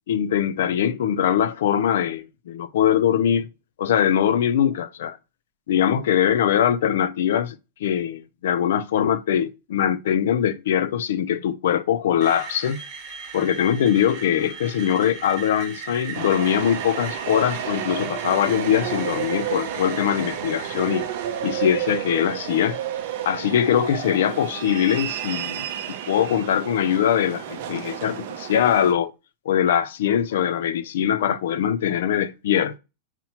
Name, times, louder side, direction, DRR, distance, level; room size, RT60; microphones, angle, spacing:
voice 1, 0.1-3.5 3.8-5.2 5.7-7.6 7.8-12.8 13.3-21.1 21.4-22.8 23.2-25.7 26.1-29.1 29.5-32.7, left 9 dB, 75° left, 0.4 m, -22 dB
Screech, 12.2-26.2, right 5 dB, 35° right, 1.2 m, -39 dB
sound 1, 16.1-28.9, right 10 dB, 55° right, 0.5 m, -31 dB
5.5 x 2.0 x 2.8 m
supercardioid pair, 165°, 0 cm